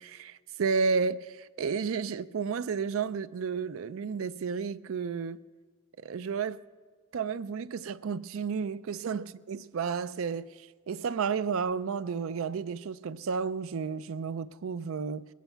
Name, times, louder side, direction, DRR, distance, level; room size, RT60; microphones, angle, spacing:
voice 1, 0.0-5.4 6.0-6.6 7.1-15.3, right 5 dB, 70° right, 0.4 m, -32 dB
21.0 x 9.2 x 5.7 m
head